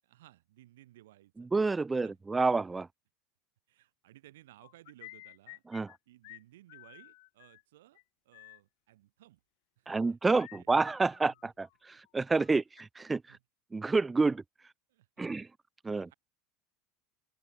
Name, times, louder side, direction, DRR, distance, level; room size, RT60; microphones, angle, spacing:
voice 1, 0.0-1.5 2.0-2.2 3.7-5.6 6.1-9.4 9.8-10.7 11.2-11.4 13.3-13.4 14.9-15.4 16.0-16.1, right 15 dB, 80° right, 7.7 m, -59 dB
voice 2, 1.5-2.9 5.7-5.9 9.9-11.7 12.1-13.4 13.7-14.4 15.2-15.5 15.8-16.1, right 3 dB, 15° right, 0.6 m, -28 dB
sound 1, 4.6-6.0 6.2-6.4 6.7-7.6 8.0-8.1 8.3-8.6 10.4-11.8 12.0-12.8, left 27 dB, 70° left, 1.7 m, -53 dB
open air
hypercardioid pair, 90°, 0 cm